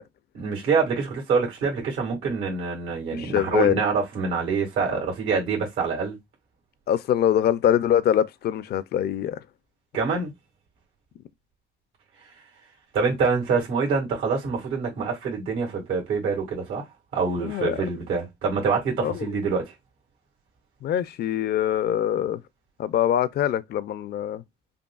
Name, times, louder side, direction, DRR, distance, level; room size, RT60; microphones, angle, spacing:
voice 1, 0.3-6.2 9.9-10.3 12.9-16.8 17.1-19.6, right 5 dB, 90° right, 2.0 m, -25 dB
voice 2, 3.1-3.8 4.9-5.0 6.9-9.4 17.4-17.8 19.0-19.3 20.8-22.4 22.8-24.4, left 10 dB, 55° left, 0.4 m, -23 dB
5.2 x 2.6 x 2.3 m
cardioid pair, 90°, 20 cm